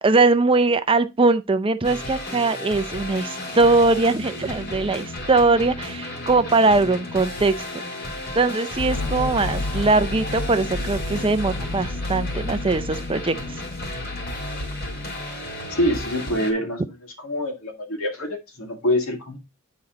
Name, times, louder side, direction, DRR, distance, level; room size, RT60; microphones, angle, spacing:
voice 1, 0.0-7.5 8.4-13.3, right 3 dB, 25° right, 0.5 m, -21 dB
sound 1, 1.8-16.5, left 1 dB, 45° left, 2.6 m, -33 dB
sound 2, 8.8-15.6, left 2 dB, 70° left, 0.7 m, -31 dB
voice 2, 15.7-16.8 17.2-19.4, left 1 dB, 90° left, 2.0 m, -25 dB
9.7 x 4.2 x 3.8 m
head